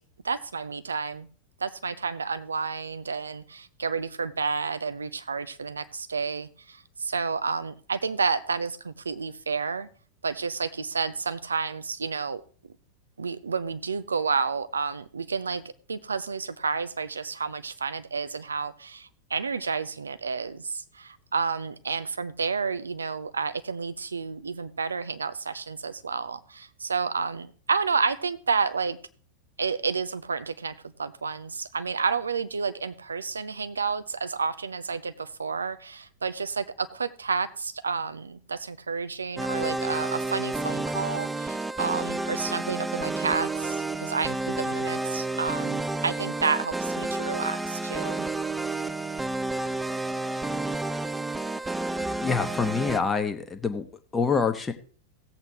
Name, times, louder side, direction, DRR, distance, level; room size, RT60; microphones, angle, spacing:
voice 1, 0.2-1.3 1.6-9.9 10.2-12.4 13.2-15.6 15.9-29.0 29.6-48.2, right 5 dB, 75° right, 12 dB, 0.6 m, -30 dB
sound 1, 39.4-53.0, right 2 dB, 10° right, 0.4 m, -30 dB
voice 2, 52.2-53.8 54.1-54.7, left 5 dB, 15° left, 7 dB, 1.0 m, -26 dB
17.0 x 7.9 x 3.0 m, 0.42 s
figure-of-eight pair, 90°, 0 cm